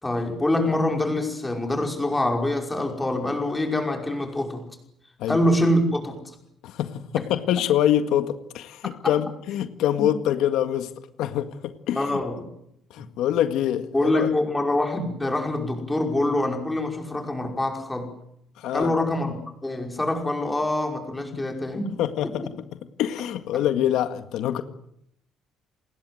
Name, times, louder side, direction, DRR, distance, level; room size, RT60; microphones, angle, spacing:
voice 1, 0.0-4.6 5.3-6.4 7.2-7.3 10.0-10.1 12.0-12.5 13.9-18.1 18.7-19.3 19.6-21.9, left 1 dB, 10° left, 3 dB, 5.4 m, -25 dB
voice 2, 6.6-10.9 11.2-12.2 12.9-14.3 18.6-18.9 22.0-22.3 23.0-24.6, left 11 dB, 75° left, 9 dB, 1.9 m, -25 dB
28.0 x 20.5 x 7.9 m, 0.74 s
cardioid pair, 165°, 0 cm